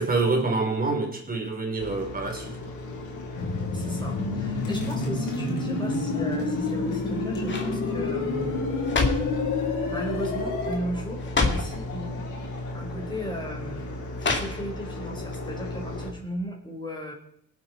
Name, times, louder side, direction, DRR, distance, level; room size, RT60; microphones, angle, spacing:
voice 1, 0.0-2.5, right 3 dB, 30° right, 3 dB, 3.6 m, -26 dB
sound 1, 1.8-16.1, left 1 dB, 70° left, 4.1 m, -36 dB
sound 2, 3.4-10.8, left 3 dB, 90° left, 3.2 m, -29 dB
voice 2, 3.7-8.6 9.9-12.2 12.7-13.9 14.3-17.1, equal, 15° left, 0 dB, 4.4 m, -36 dB
sound 3, 6.6-7.0 7.4-7.8 8.6-9.4 10.2-10.4 10.7-10.8 11.2-11.8 12.7-12.8 14.2-14.9 15.3-15.4, left 3 dB, 40° left, 2.6 m, -28 dB
19.0 x 8.1 x 4.3 m, 0.71 s
cardioid pair, 90°, 30 cm